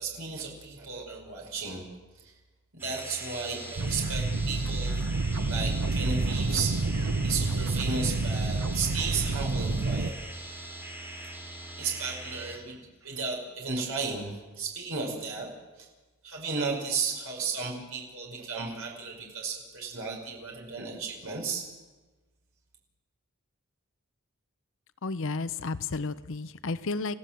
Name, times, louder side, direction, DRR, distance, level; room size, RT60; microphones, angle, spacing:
voice 1, 0.0-1.8 2.1-2.3 2.7-5.0 5.5-6.8 7.2-10.1 11.2-11.3 11.8-15.5 15.8-15.9 16.2-21.7, right 4 dB, 65° right, 0 dB, 5.7 m, -34 dB
sound 1, 2.8-12.6, right 1 dB, 10° right, 4.0 m, -42 dB
sound 2, 3.8-10.1, right 3 dB, 85° right, 0.9 m, -28 dB
voice 2, 25.0-27.2, left 3 dB, 60° left, 14 dB, 0.8 m, -32 dB
30.0 x 16.0 x 7.6 m, 1.2 s
head